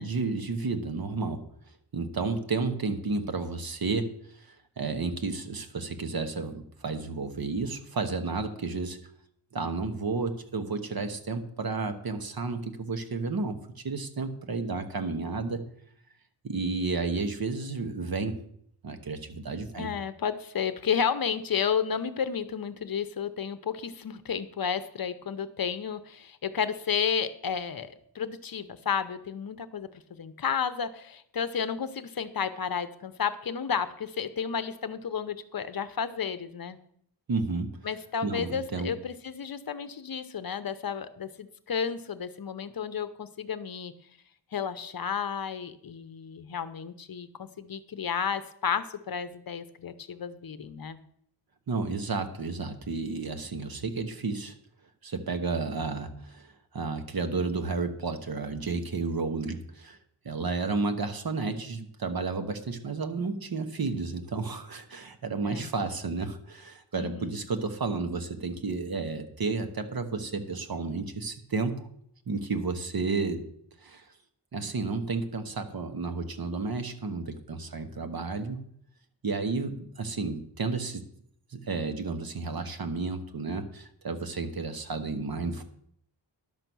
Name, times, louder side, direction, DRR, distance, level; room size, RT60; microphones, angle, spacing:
voice 1, 0.0-1.4 1.9-9.0 9.5-15.6 16.4-18.4 18.8-19.9 37.3-37.7 38.2-38.9 51.7-54.5 55.0-60.0 60.2-71.9 72.3-73.5 73.8-74.1 74.5-78.6 79.2-81.0 81.5-85.6, right 4 dB, 55° right, 8 dB, 1.2 m, -32 dB
voice 2, 19.8-36.8 37.8-43.9 44.5-51.0 65.4-65.7 67.0-67.4, left 7 dB, 55° left, 12 dB, 0.7 m, -32 dB
11.0 x 6.7 x 6.1 m, 0.67 s
wide cardioid pair, 135°, 44 cm